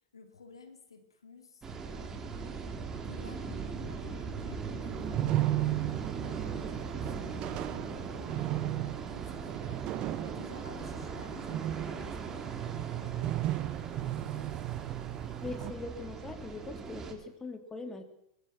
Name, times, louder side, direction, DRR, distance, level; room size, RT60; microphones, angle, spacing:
voice 1, 0.1-2.6 3.0-6.0 6.4-8.4 9.1-9.9 10.2-13.3 13.8-14.6, left 5 dB, 85° left, 7 dB, 3.2 m, -54 dB
sound 1, 1.6-17.1, right 5 dB, 20° right, 3.8 m, -40 dB
sound 2, 4.9-15.7, right 14 dB, 40° right, 1.5 m, -35 dB
voice 2, 15.4-18.0, left 3 dB, 15° left, 7 dB, 3.4 m, -41 dB
23.0 x 22.0 x 6.2 m, 0.75 s
hypercardioid pair, 100°, 3 cm